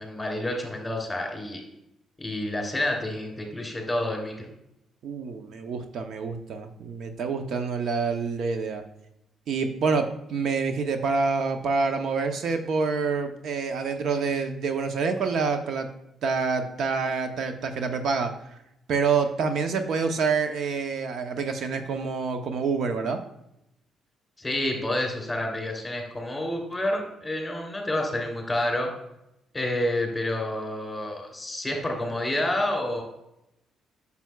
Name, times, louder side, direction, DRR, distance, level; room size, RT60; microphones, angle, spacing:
voice 1, 0.0-1.6 2.2-4.5 24.4-28.9 29.5-33.0, left 1 dB, 15° left, 1 dB, 2.9 m, -29 dB
voice 2, 5.0-8.9 9.5-15.9 16.2-18.3 18.9-23.2, right 5 dB, 65° right, 6 dB, 0.7 m, -27 dB
9.0 x 7.0 x 2.3 m, 0.84 s
cardioid pair, 90°, 0 cm